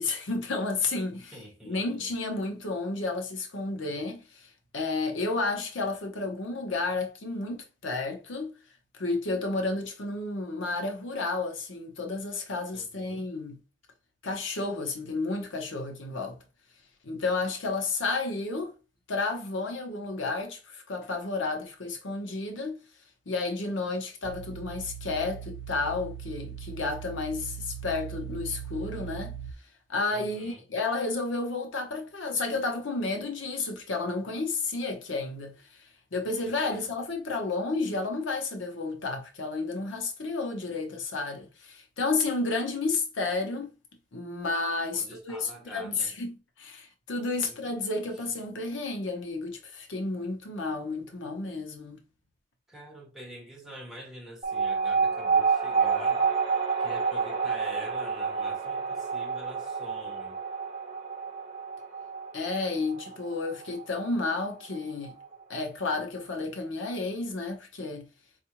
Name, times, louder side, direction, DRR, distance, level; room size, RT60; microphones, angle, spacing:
voice 1, 0.0-1.4 1.6-8.5 9.0-13.6 14.2-16.4 17.0-18.7 19.1-22.8 23.3-29.3 29.9-43.7 44.1-46.3 46.6-52.0 62.3-65.2 65.5-68.1, left 3 dB, 75° left, 0.8 m, -31 dB
voice 2, 1.1-2.1 12.7-13.3 30.1-30.6 36.4-36.9 44.9-46.1 47.4-47.7 52.7-56.3 56.8-60.4, right 1 dB, ahead, 1.0 m, -46 dB
sound 1, 24.2-29.5, right 9 dB, 55° right, 0.4 m, -40 dB
sound 2, 54.4-65.3, right 5 dB, 30° right, 0.8 m, -29 dB
4.5 x 2.4 x 2.9 m
head